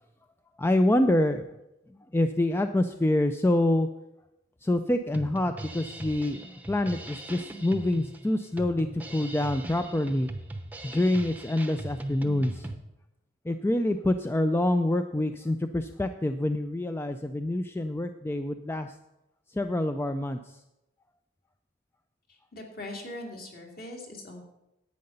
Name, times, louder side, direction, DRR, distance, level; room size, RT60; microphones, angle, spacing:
voice 1, 0.6-1.5 2.1-3.9 4.6-10.3 10.8-12.7 13.5-18.9 19.5-20.6, left 1 dB, 10° left, 8 dB, 0.3 m, -26 dB
Drum kit, 5.1-12.8, right 1 dB, 10° right, 0.7 m, -40 dB
voice 2, 22.3-24.4, left 1 dB, 45° left, 1 dB, 2.3 m, -41 dB
10.5 x 8.6 x 5.5 m, 0.92 s
head